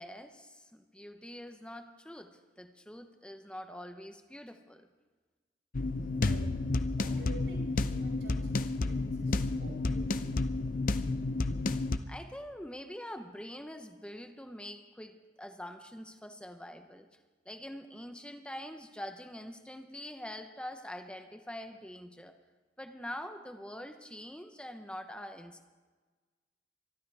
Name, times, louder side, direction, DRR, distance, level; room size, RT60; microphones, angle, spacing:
voice 1, 0.0-4.9 12.1-17.1 17.5-22.3 22.8-25.7, equal, 5° left, 7 dB, 0.9 m, -45 dB
sound 1, 5.7-12.0, left 2 dB, 50° left, 0.6 m, -31 dB
voice 2, 6.2-6.6 6.9-8.5 8.8-10.4, right 1 dB, 65° right, 0 dB, 6.2 m, -50 dB
24.5 x 12.5 x 3.5 m, 1.4 s
head